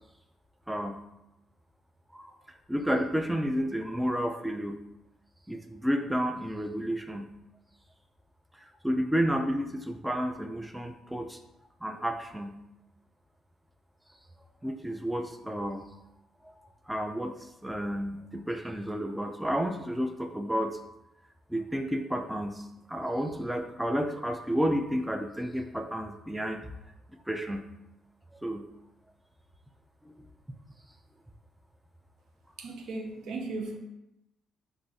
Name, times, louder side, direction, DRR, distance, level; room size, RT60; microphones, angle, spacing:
voice 1, 0.7-1.0 2.1-2.3 2.7-4.8 5.5-7.3 8.8-11.4 11.8-12.6 14.6-15.8 16.9-17.4 17.6-20.8 21.5-26.7 27.3-27.6 28.4-28.6 30.1-30.2, equal, 5° right, 0.3 m, -31 dB
voice 2, 32.6-33.8, right 3 dB, 75° right, 0.5 m, -36 dB
2.6 x 2.4 x 3.9 m
cardioid pair, 90°, 0 cm